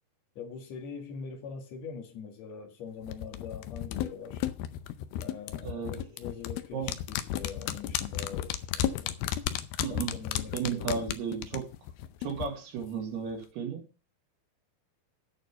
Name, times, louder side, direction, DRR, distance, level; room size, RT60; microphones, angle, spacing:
voice 1, 0.4-4.5 5.2-9.2 9.9-11.0, left 6 dB, 50° left, 2.5 m, -43 dB
sound 1, 3.1-12.5 12.8-12.9, left 11 dB, 80° left, 2.3 m, -34 dB
voice 2, 5.6-6.0 6.7-6.9 9.8-10.1 10.5-11.7 12.2-13.9, right 6 dB, 75° right, 4.2 m, -34 dB
8.9 x 6.4 x 7.1 m
omnidirectional pair, 4.7 m